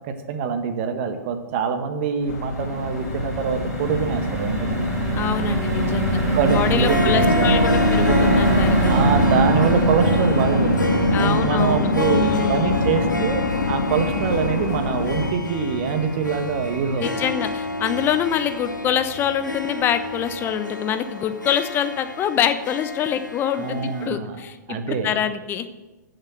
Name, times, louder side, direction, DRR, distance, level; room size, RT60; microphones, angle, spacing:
voice 1, 0.3-4.8 6.3-7.8 8.6-17.0 23.5-24.4 24.7-25.1, right 6 dB, 40° right, 7 dB, 1.6 m, -24 dB
sound 1, 2.2-18.5 18.9-19.0 19.3-19.5, right 1 dB, 5° right, 4.7 m, -24 dB
sound 2, 2.3-15.3, left 5 dB, 55° left, 1.5 m, -28 dB
voice 2, 5.2-9.1 11.1-12.8 17.0-25.7, left 9 dB, 20° left, 10 dB, 0.9 m, -25 dB
Harp, 6.5-24.1, left 2 dB, 85° left, 1.3 m, -29 dB
16.0 x 6.7 x 6.5 m, 1.1 s
figure-of-eight pair, 115°, 10 cm